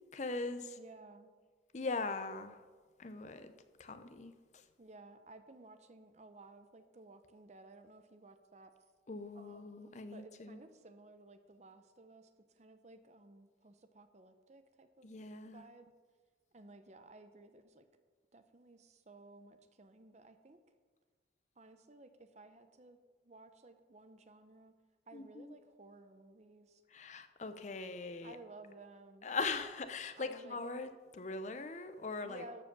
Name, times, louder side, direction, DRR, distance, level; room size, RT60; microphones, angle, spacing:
voice 1, 0.1-0.8 1.7-2.6 3.0-3.5 3.8-4.6 9.1-10.6 15.0-15.7 25.1-25.6 26.9-28.4 29.2-32.4, left 3 dB, 40° left, 9 dB, 0.6 m, -41 dB
voice 2, 0.8-1.3 4.8-8.7 9.3-12.3 12.6-15.1 15.5-15.9 16.5-17.9 18.3-20.6 21.6-23.0 23.2-24.7 25.1-26.8 28.2-29.3 30.2-30.6 32.2-32.6, right 2 dB, 40° right, 9 dB, 0.7 m, -56 dB
13.5 x 5.1 x 6.6 m, 1.4 s
head